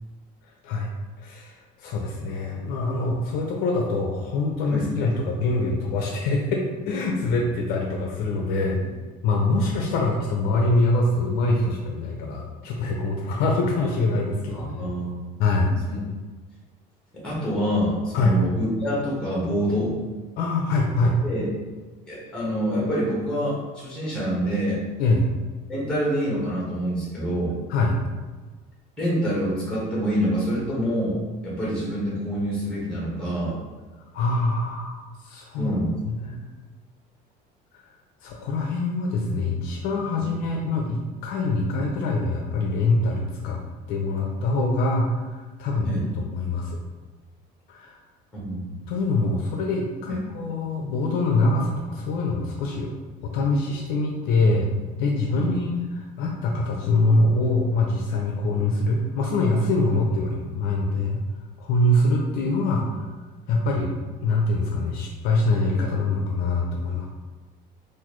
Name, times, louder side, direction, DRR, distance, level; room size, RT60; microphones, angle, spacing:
voice 1, 1.2-8.9 9.2-14.9 15.4-15.7 18.1-18.4 20.4-21.2 25.0-25.3 27.7-28.0 34.1-35.0 35.2-35.7 36.0-36.4 38.2-43.6 43.9-46.8 47.7-47.9 48.9-52.9 53.2-54.7 55.0-61.2 61.6-63.1 63.5-67.1, left 2 dB, 60° left, 0 dB, 0.5 m, -24 dB
voice 2, 14.5-15.2 15.9-16.0 17.1-19.9 21.2-21.5 22.1-24.8 25.7-27.6 29.0-33.6 35.6-36.0 40.2-40.3 45.8-46.1 48.3-48.8 55.3-55.5, equal, 5° left, -6 dB, 1.2 m, -26 dB
3.9 x 2.6 x 3.0 m, 1.3 s
cardioid pair, 170°, 18 cm